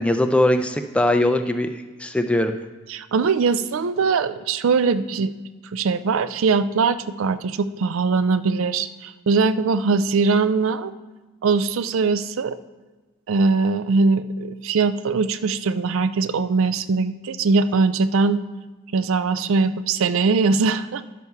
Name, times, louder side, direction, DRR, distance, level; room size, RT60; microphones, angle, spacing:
voice 1, 0.0-2.6, left 1 dB, 5° left, 7 dB, 0.4 m, -21 dB
voice 2, 2.9-5.3 5.7-10.9 11.4-12.6 13.3-18.4 18.9-21.0, right 4 dB, 60° right, 13 dB, 0.4 m, -21 dB
11.0 x 7.0 x 4.6 m, 1.3 s
head